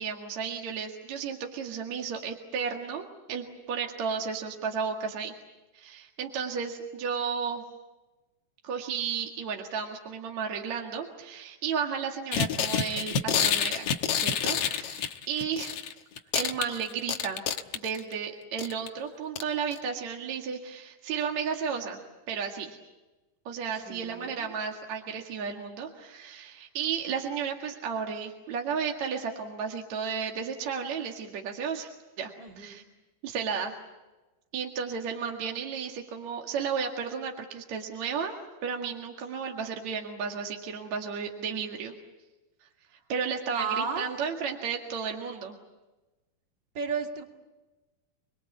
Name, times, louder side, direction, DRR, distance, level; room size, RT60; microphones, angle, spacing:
voice 1, 0.0-5.3 5.7-7.6 8.6-15.8 16.3-17.4 17.7-22.0 22.3-22.8 23.5-31.9 32.2-32.8 33.2-33.8 34.5-38.3 38.6-41.9 43.1-45.6, right 6 dB, 55° right, 2 dB, 2.9 m, -33 dB
sound 1, 12.3-15.9 16.2-18.1 18.6-18.9 19.4-19.5 19.7-19.8, left 8 dB, 70° left, 1.4 m, -28 dB
voice 2, 23.7-24.5 32.4-32.8 43.5-44.2 46.7-47.2, right 5 dB, 35° right, 3 dB, 2.6 m, -34 dB
28.5 x 22.0 x 8.4 m, 1.1 s
omnidirectional pair, 4.3 m